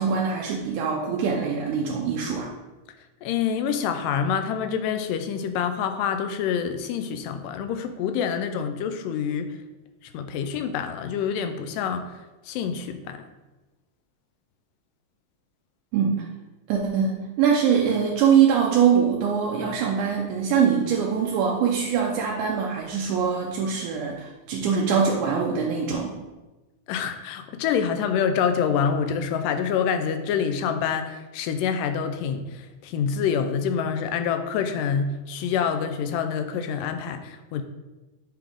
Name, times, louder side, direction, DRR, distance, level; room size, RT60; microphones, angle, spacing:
voice 1, 0.0-2.5 15.9-16.3 16.7-26.1, right 7 dB, 80° right, -1 dB, 2.0 m, -23 dB
voice 2, 3.2-9.6 10.0-12.2 12.4-13.2 26.9-37.6, left 7 dB, 85° left, 8 dB, 2.1 m, -26 dB
9.0 x 3.4 x 3.5 m, 1.1 s
omnidirectional pair, 3.8 m